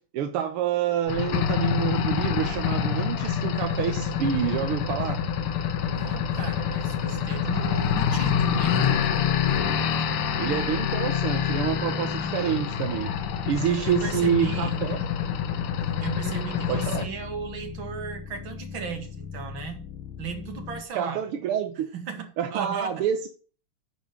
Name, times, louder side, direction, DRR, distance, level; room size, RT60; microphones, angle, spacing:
voice 1, 0.1-5.2 10.4-13.1 13.4-15.0 16.7-17.1 21.0-21.9 22.4-23.3, right 9 dB, 85° right, 1.8 m, -27 dB
sound 1, 1.1-17.1, left 8 dB, 85° left, 1.9 m, -26 dB
sound 2, 3.9-20.8, left 6 dB, 65° left, 2.0 m, -40 dB
voice 2, 5.9-8.9 13.9-14.8 16.0-19.8 20.2-21.2 21.9-23.1, right 7 dB, 65° right, 2.6 m, -36 dB
10.0 x 5.2 x 6.6 m
omnidirectional pair, 2.4 m